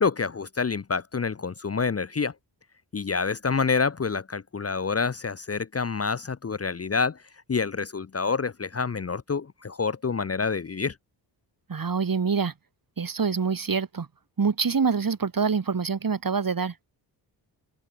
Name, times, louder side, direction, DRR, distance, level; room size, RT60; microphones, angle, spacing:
voice 1, 0.0-2.3 2.9-7.2 7.5-10.9, left 5 dB, 30° left, 1.1 m, -27 dB
voice 2, 11.7-12.5 13.0-14.1 14.4-16.8, right 5 dB, 45° right, 4.4 m, -25 dB
open air
supercardioid pair, 50°, 46 cm